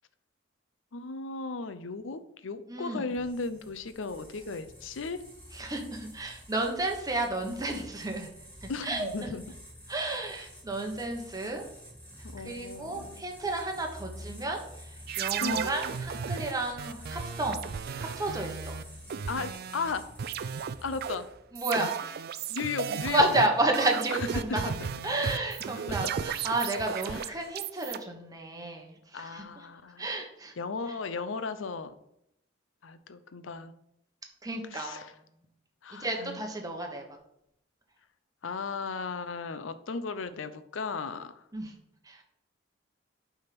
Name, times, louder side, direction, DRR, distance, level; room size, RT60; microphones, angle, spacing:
voice 1, 0.9-5.2 8.7-9.4 12.2-13.2 15.4-15.7 19.3-20.0 20.8-21.3 22.5-23.3 24.5-24.9 27.1-27.2 29.1-30.1 30.6-32.0 32.8-33.7 34.7-35.1 35.8-36.4 38.4-41.4, left 4 dB, 80° left, 11 dB, 0.6 m, -36 dB
voice 2, 2.7-3.1 5.5-8.3 8.6-9.3 9.9-11.6 12.2-17.6 18.0-18.7 21.5-22.2 23.1-24.7 25.0-29.4 30.0-30.5 34.4-35.1 35.9-37.0 41.5-41.7 42.0-42.2, right 2 dB, 20° right, 2 dB, 1.2 m, -31 dB
sound 1, 3.1-21.4, equal, 10° left, 2.6 m, -48 dB
sound 2, 15.1-19.9 20.2-28.0, right 7 dB, 55° right, 0.4 m, -35 dB
8.7 x 3.6 x 5.9 m, 0.79 s
head